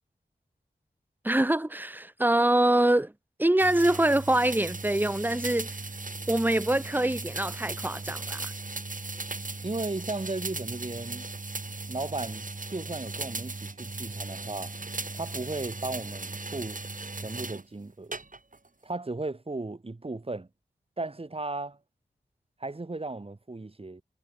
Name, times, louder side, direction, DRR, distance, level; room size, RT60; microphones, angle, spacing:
voice 1, 1.2-3.1 3.4-5.8 6.3-8.5, right 1 dB, 10° right, 0.8 m, -24 dB
sound 1, 3.6-17.6 18.1-18.7, right 3 dB, 50° right, 3.1 m, -37 dB
voice 2, 9.6-11.3 11.9-14.8 15.1-16.8 17.2-18.1 18.8-20.5 21.0-21.8 22.6-24.0, right 2 dB, 35° right, 1.2 m, -35 dB
cardioid pair, 40°, 18 cm